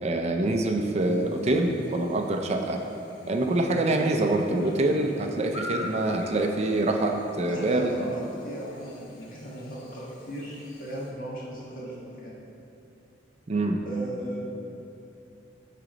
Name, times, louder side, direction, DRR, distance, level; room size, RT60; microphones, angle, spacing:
voice 1, 0.0-2.8 3.3-7.9 13.5-13.8, right 2 dB, 35° right, 3 dB, 0.4 m, -25 dB
Chirp tweet / Buzz, 1.0-11.1, equal, 70° left, 0.9 m, -45 dB
voice 2, 7.5-12.3 13.8-14.4, equal, 50° left, -5 dB, 1.6 m, -37 dB
9.1 x 3.8 x 5.1 m, 2.8 s
head